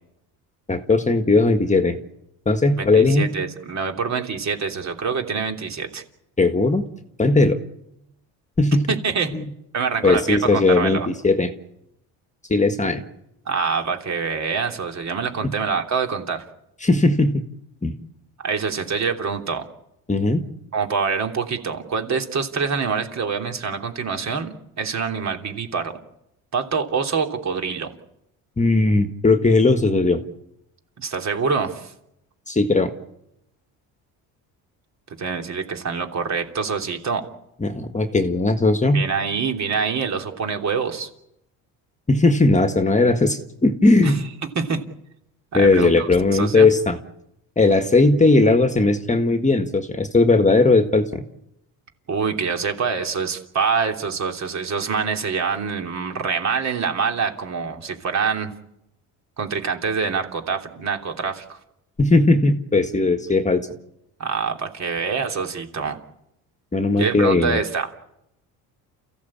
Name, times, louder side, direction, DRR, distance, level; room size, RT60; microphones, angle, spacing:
voice 1, 0.7-2.0 2.4-3.3 6.4-6.8 7.2-7.6 8.6-8.9 9.3-9.5 10.0-11.5 12.5-13.0 15.4-15.5 16.8-17.4 17.8-17.9 20.1-20.4 28.6-30.2 32.5-32.9 37.6-39.0 42.1-44.2 45.5-47.0 47.6-51.2 62.0-63.7 66.7-67.6, left 3 dB, 20° left, 8 dB, 1.6 m, -18 dB
voice 2, 2.8-6.0 8.9-9.3 9.7-11.1 13.5-16.4 18.4-19.7 20.7-25.9 26.5-27.9 31.0-31.9 35.2-37.3 38.9-41.1 44.0-44.1 44.5-44.8 45.5-46.7 52.1-58.5 59.4-61.6 64.2-66.0 67.0-67.9, right 5 dB, 45° right, 4 dB, 3.2 m, -25 dB
29.0 x 15.5 x 8.7 m, 0.84 s
cardioid pair, 100°, 39 cm